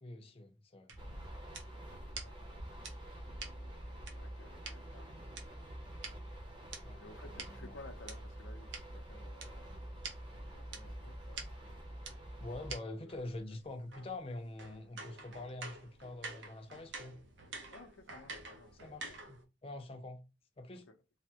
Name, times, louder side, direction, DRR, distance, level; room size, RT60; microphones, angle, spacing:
voice 1, 0.0-0.9 6.8-7.0 7.6-7.8 12.4-17.2 18.8-20.2 20.6-20.9, left 2 dB, 30° left, 0.4 m, -45 dB
sound 1, 0.9-4.7 5.4-8.2 8.7-8.8 9.4-9.5 9.7-9.8 10.0-10.2 10.7-10.8 11.4-11.5 12.1-12.2 12.7-12.8 13.1-19.4, right 3 dB, 70° right, 0.7 m, -48 dB
voice 2, 1.0-1.4 1.7-2.4 3.2-5.6 7.0-9.7 10.3-11.5 13.0-13.1 13.5-13.6 17.7-19.0 19.7-19.8 20.7-21.0, left 2 dB, 80° left, 0.5 m, -57 dB
sound 2, 1.0-12.8, right 1 dB, 25° right, 0.7 m, -47 dB
3.3 x 2.0 x 2.7 m
head